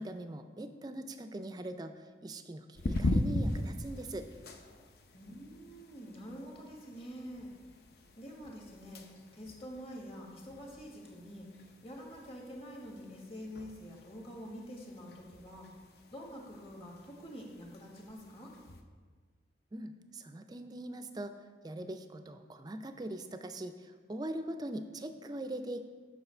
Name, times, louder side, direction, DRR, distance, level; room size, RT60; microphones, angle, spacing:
voice 1, 0.0-4.3 19.7-21.3 21.6-25.8, right 1 dB, 20° right, 9 dB, 0.4 m, -41 dB
sound 1, 2.7-18.8, left 1 dB, 60° left, 0.6 m, -41 dB
voice 2, 5.1-7.5 8.2-15.7 16.1-18.5, equal, 30° left, -1 dB, 1.4 m, -47 dB
8.1 x 5.9 x 4.4 m, 1.5 s
head